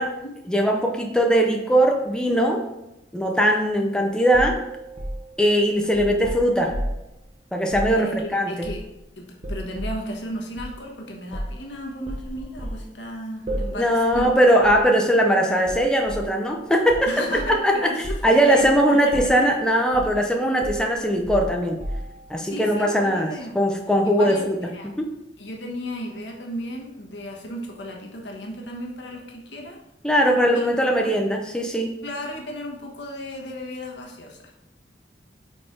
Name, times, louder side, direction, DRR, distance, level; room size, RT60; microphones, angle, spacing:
voice 1, 0.5-2.6 3.1-4.6 5.4-6.8 7.5-8.7 13.7-17.1 17.5-17.9 18.2-21.8 22.3-24.6 24.8-25.1 30.0-31.9, equal, 5° left, 1 dB, 0.5 m, -20 dB
sound 1, 4.3-7.1 7.6-8.0 8.6-9.1 9.4-10.0 10.6-10.7 11.3-11.6 12.1-12.9 13.5-13.8 14.1-14.4 14.6-14.9 15.7-16.3 16.9-17.6 18.0-18.3 18.6-18.8 19.1-19.5 19.9-20.2 20.6-22.3, equal, 35° right, 0.9 m, -32 dB
voice 2, 7.9-8.8 9.2-14.3 17.1-19.4 22.4-23.6 24.0-24.9 25.4-29.8 30.5-30.6 31.0-31.1 32.0-34.5, left 1 dB, 80° left, 0 dB, 1.2 m, -34 dB
4.8 x 4.4 x 4.4 m, 0.90 s
head